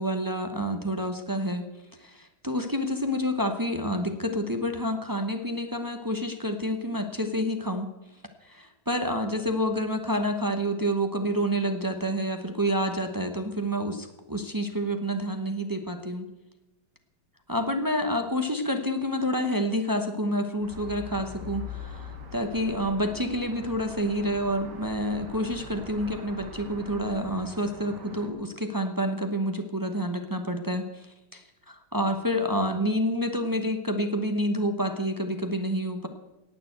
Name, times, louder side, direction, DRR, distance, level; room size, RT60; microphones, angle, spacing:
voice 1, 0.0-1.6 2.0-7.9 8.4-16.3 17.5-36.1, equal, 20° right, 6 dB, 0.6 m, -28 dB
sound 1, 20.6-28.3, left 1 dB, 65° right, 2.4 m, -42 dB
18.0 x 6.9 x 7.9 m, 1.0 s
omnidirectional pair, 2.0 m